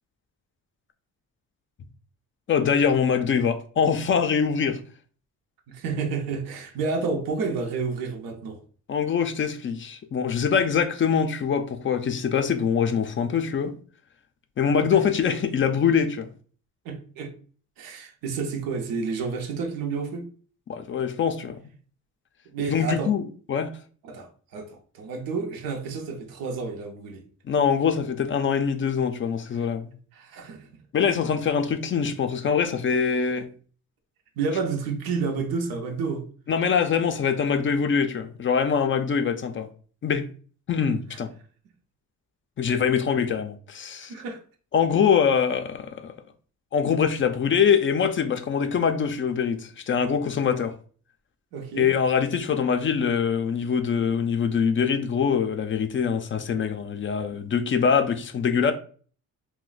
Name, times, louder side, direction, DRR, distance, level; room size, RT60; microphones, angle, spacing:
voice 1, 2.5-4.8 8.9-13.7 14.6-16.3 20.7-21.6 22.7-23.2 23.5-23.7 27.5-29.9 30.9-33.5 36.5-39.7 40.0-40.3 40.7-41.3 42.6-44.1 44.7-46.1 46.7-50.7 51.8-58.7, left 6 dB, 35° left, 0.4 m, -23 dB
voice 2, 5.7-8.6 14.7-15.1 16.8-17.3 17.8-20.3 22.5-23.1 24.0-27.2 30.1-30.7 34.4-36.3 44.1-44.4 51.5-51.9, right 4 dB, 85° right, 0.7 m, -30 dB
2.4 x 2.2 x 3.8 m
cardioid pair, 90°, 34 cm